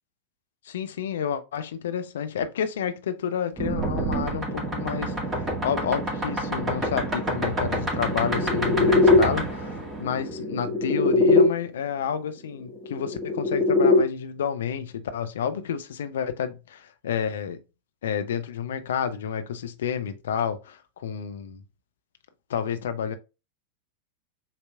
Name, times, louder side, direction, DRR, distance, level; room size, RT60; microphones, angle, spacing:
voice 1, 0.6-17.6 18.0-21.6 22.5-23.2, left 8 dB, 60° left, 0.7 m, -30 dB
sound 1, 3.6-11.5 12.8-14.0, left 2 dB, 20° right, 1.7 m, -23 dB
7.4 x 3.0 x 2.3 m
figure-of-eight pair, 90°, 0 cm